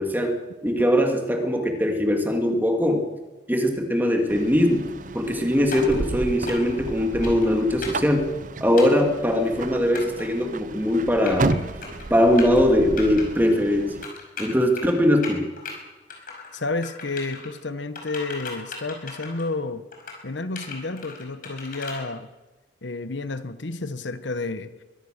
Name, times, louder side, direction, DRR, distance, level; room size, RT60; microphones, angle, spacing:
voice 1, 0.0-3.1 3.5-4.9 5.1-8.3 8.6-11.6 12.1-14.0 14.4-15.5, equal, 10° right, 3 dB, 2.5 m, -21 dB
sound 1, 4.3-14.1, right 2 dB, 45° right, 0.7 m, -33 dB
sound 2, 5.7-6.0 6.5-6.8 7.2-7.5 7.8-8.1 8.8-9.0 10.0-10.2 11.0-11.6 11.8-12.1 12.4-12.6 13.0-13.3 14.0-14.9 15.2-15.7 16.1-16.6 16.8-17.5 18.0-19.5 19.9-20.2 20.6-22.0, left 4 dB, 50° left, 5.5 m, -37 dB
voice 2, 16.5-19.8 20.2-22.3 22.8-24.7, left 3 dB, 80° left, 12 dB, 1.1 m, -30 dB
23.0 x 18.0 x 6.6 m, 1.2 s
head